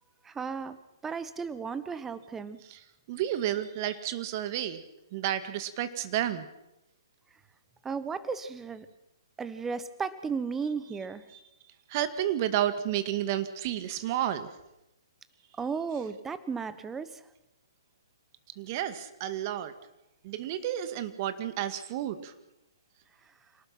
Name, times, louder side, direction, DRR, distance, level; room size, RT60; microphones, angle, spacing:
voice 1, 0.2-0.8 1.0-2.6 7.8-8.9 9.4-11.2 15.6-17.2, right 5 dB, 10° right, 13 dB, 1.3 m, -34 dB
voice 2, 3.1-4.8 5.1-6.5 11.3-11.4 11.9-14.5 18.6-19.7 20.2-22.3, right 11 dB, 40° right, 10 dB, 2.1 m, -31 dB
27.5 x 19.0 x 6.0 m, 0.89 s
figure-of-eight pair, 130°, 2 cm